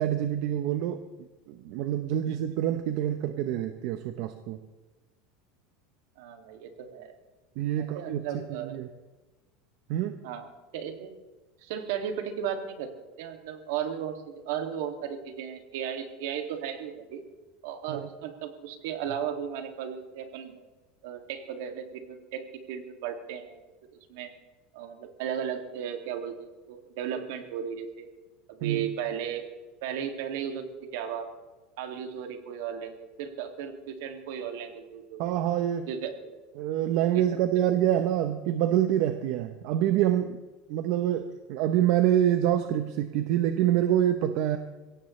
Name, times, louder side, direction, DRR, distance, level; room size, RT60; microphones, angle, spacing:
voice 1, 0.0-4.6 7.6-8.9 9.9-10.1 17.9-18.1 28.6-28.9 35.2-35.9 36.6-40.4 40.7-44.6, right 11 dB, 50° right, 8 dB, 0.8 m, -26 dB
voice 2, 6.2-7.1 7.8-8.8 10.2-10.5 10.7-11.1 11.6-17.2 17.6-20.6 21.0-23.6 24.1-24.3 24.7-28.1 28.5-29.5 29.8-31.3 31.8-35.2 35.9-36.3 37.1-37.2 37.5-37.7, right 8 dB, 65° right, 5 dB, 2.3 m, -35 dB
23.0 x 17.0 x 3.3 m, 1.2 s
supercardioid pair, 175°, 0 cm